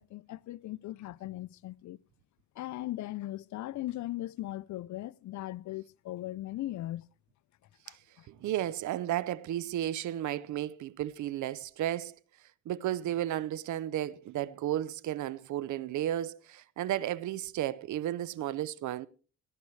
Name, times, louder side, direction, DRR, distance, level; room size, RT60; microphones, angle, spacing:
voice 1, 0.0-2.0 2.6-7.1 7.9-8.3, left 15 dB, 70° left, 0.6 m, -39 dB
voice 2, 8.3-12.2 12.7-19.1, right 12 dB, 75° right, 0.7 m, -33 dB
18.0 x 14.0 x 3.2 m
cardioid pair, 90°, 30 cm